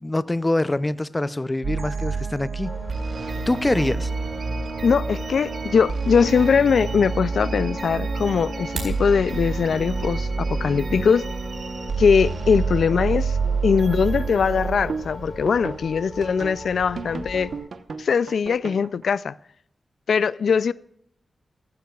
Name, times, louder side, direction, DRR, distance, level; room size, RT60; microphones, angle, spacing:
voice 1, 0.0-2.7 3.5-4.1, left 2 dB, 15° left, 0.4 m, -24 dB
sound 1, 1.6-15.8 16.2-16.6 17.0-19.0, right 4 dB, 60° right, 0.9 m, -28 dB
sound 2, 2.6-17.6, left 1 dB, 40° left, 6.0 m, -39 dB
voice 2, 4.8-11.3 12.0-13.4 13.6-17.5 18.0-19.3 20.1-20.7, left 6 dB, 85° left, 0.3 m, -21 dB
sound 3, 8.5-9.1, right 3 dB, 85° right, 4.5 m, -32 dB
15.5 x 15.5 x 2.3 m
wide cardioid pair, 155°, 0 cm